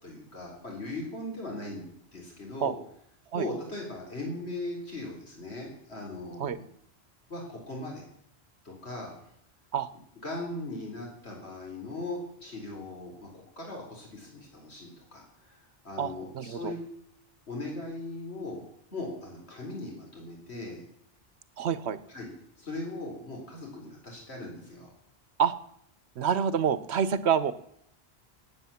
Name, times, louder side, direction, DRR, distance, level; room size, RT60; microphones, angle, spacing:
voice 1, 0.0-1.9 2.1-2.8 3.3-6.7 7.3-8.0 8.6-9.1 10.2-15.6 15.8-16.8 17.5-18.6 18.9-20.8 22.1-22.3 22.6-24.9, left 2 dB, 80° left, -1 dB, 4.2 m, -39 dB
voice 2, 16.0-16.7 21.6-22.0 25.4-25.5 26.2-27.5, right 7 dB, 85° right, 15 dB, 1.2 m, -27 dB
18.0 x 8.9 x 7.1 m, 0.72 s
omnidirectional pair, 1.1 m